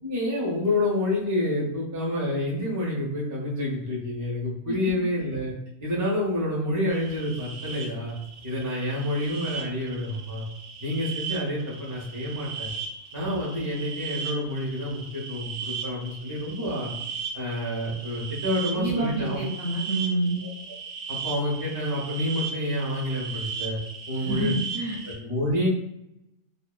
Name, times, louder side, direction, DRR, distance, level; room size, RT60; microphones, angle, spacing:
voice 1, 0.0-5.5 5.8-8.1 8.4-10.5 10.8-12.7 13.1-16.9 17.3-19.4 20.4-20.5 21.1-23.8 24.1-24.5 25.0-25.7, left 1 dB, 25° right, -4 dB, 0.4 m, -28 dB
sound 1, 6.9-25.2, right 6 dB, 80° right, 1.0 m, -37 dB
voice 2, 18.8-20.4 24.2-25.0, right 2 dB, 60° right, -5 dB, 0.7 m, -28 dB
2.6 x 2.1 x 2.3 m, 0.84 s
omnidirectional pair, 1.5 m